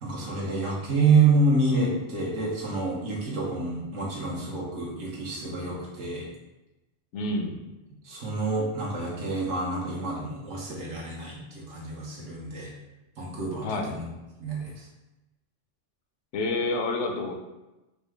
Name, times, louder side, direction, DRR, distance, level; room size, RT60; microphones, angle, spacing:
voice 1, 0.0-6.3 8.0-12.7 13.2-14.1 14.4-14.9, right 3 dB, 85° right, -3 dB, 1.3 m, -27 dB
voice 2, 7.1-7.6 13.6-13.9 16.3-17.3, left 2 dB, 80° left, 3 dB, 0.9 m, -28 dB
4.6 x 2.3 x 3.2 m, 1.0 s
omnidirectional pair, 1.2 m